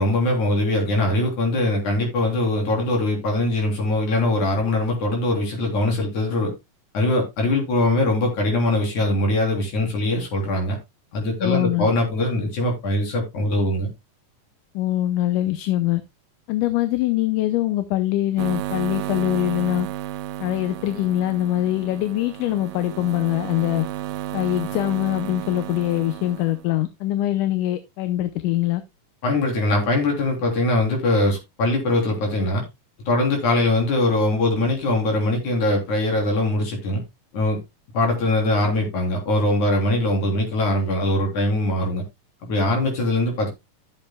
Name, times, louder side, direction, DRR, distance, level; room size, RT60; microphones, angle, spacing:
voice 1, 0.0-6.5 6.9-10.8 11.1-13.9 29.2-32.6 33.1-37.0 37.3-37.6 37.9-42.0 42.4-43.5, left 2 dB, 65° left, 4.8 m, -22 dB
voice 2, 11.4-11.9 14.7-16.0 16.5-19.9 20.4-23.9 24.3-28.8, left 14 dB, 85° left, 2.3 m, -23 dB
sound 1, 18.4-26.6, right 12 dB, 85° right, 2.3 m, -32 dB
14.0 x 7.7 x 2.2 m
omnidirectional pair, 3.6 m